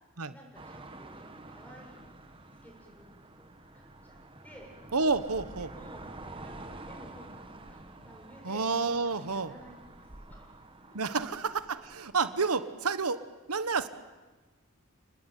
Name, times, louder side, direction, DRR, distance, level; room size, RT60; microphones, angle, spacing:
voice 1, 0.2-2.1 2.5-3.1 3.4-3.5 3.7-4.2 4.4-4.7 5.6-6.1 6.4-8.6 9.0-10.6 10.9-11.0, equal, 5° left, 0 dB, 7.6 m, -54 dB
sound 1, 0.5-12.1, right 2 dB, 25° right, 1.8 m, -48 dB
voice 2, 4.9-5.7 8.4-9.5 10.9-11.5 11.8-13.2 13.5-13.9, right 4 dB, 90° right, 12 dB, 1.2 m, -29 dB
30.0 x 20.0 x 9.4 m, 1.2 s
head